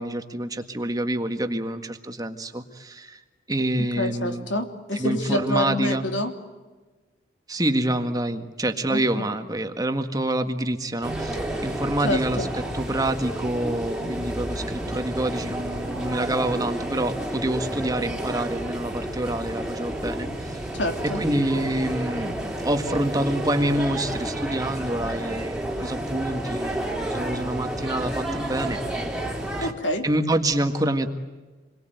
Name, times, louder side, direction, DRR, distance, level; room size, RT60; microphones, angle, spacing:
voice 1, 0.0-3.2 3.5-4.5 4.9-6.0 7.5-20.6 21.1-28.8 29.6-29.7 30.0-31.1, right 1 dB, 20° right, 6 dB, 1.7 m, -27 dB
voice 2, 4.0-6.3 8.9-9.3 12.0-12.5 20.7-21.2 21.5-21.7 29.6-30.0, left 1 dB, 70° left, 5 dB, 3.2 m, -27 dB
sound 1, 11.0-29.7, right 1 dB, 5° right, 3.1 m, -30 dB
28.5 x 22.5 x 9.2 m, 1.3 s
head